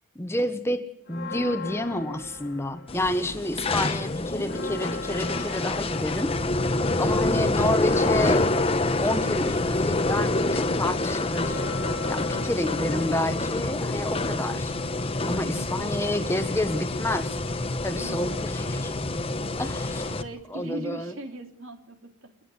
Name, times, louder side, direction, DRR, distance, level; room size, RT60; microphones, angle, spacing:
voice 1, 0.1-0.8 1.1-6.3 7.0-8.5 9.0-11.6 12.1-14.7 15.2-17.4 17.8-18.9 19.6-20.1 20.5-21.1, left 1 dB, 10° left, 9 dB, 1.3 m, -29 dB
Church bell, 1.1-3.4 3.8-3.9 4.2-14.3, left 3 dB, 55° left, 1.8 m, -40 dB
sound 1, 2.9-20.2, left 2 dB, 30° left, 1.0 m, -27 dB
voice 2, 12.3-12.8 15.2-16.6 18.0-18.5 19.7-22.3, right 1 dB, 75° right, 5 dB, 3.1 m, -41 dB
29.5 x 10.0 x 9.8 m, 0.75 s
head